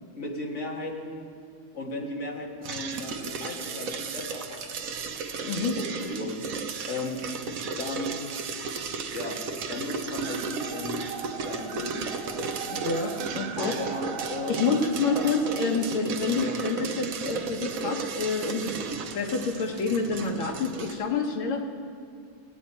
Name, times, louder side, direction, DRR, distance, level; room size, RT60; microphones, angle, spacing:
voice 1, 0.2-1.3 1.7-4.9 5.8-6.3 6.9-7.2 7.6-8.2 9.1-9.4 9.7-11.0 11.4-12.8 13.6-14.5 16.4-16.6, left 2 dB, 40° left, -1 dB, 1.8 m, -35 dB
sound 1, 2.6-21.0, right 5 dB, 60° right, 0.9 m, -35 dB
voice 2, 5.4-5.8 12.8-13.8 14.5-21.6, left 4 dB, 85° left, 2 dB, 2.0 m, -28 dB
sound 2, 10.2-16.2, right 6 dB, 80° right, 1.5 m, -39 dB
19.0 x 9.1 x 4.4 m, 2.2 s
omnidirectional pair, 2.2 m